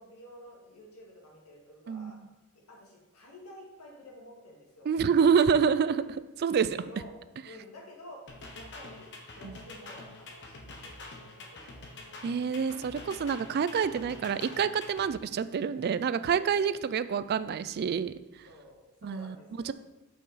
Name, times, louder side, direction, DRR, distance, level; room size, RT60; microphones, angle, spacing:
voice 1, 0.0-2.2 2.7-4.9 5.2-5.4 5.7-6.1 6.6-7.1 7.4-8.2 8.5-12.8 16.3-16.7 18.4-19.7, left 1 dB, 85° left, -2 dB, 2.0 m, -51 dB
voice 2, 1.9-2.3 4.9-6.0 6.4-6.8 9.4-9.6 12.2-18.1 19.0-19.4 19.6-19.7, right 6 dB, 45° right, 14 dB, 0.3 m, -27 dB
sound 1, 8.3-15.1, left 2 dB, 55° left, 1.1 m, -46 dB
6.8 x 5.9 x 4.1 m, 1.0 s
head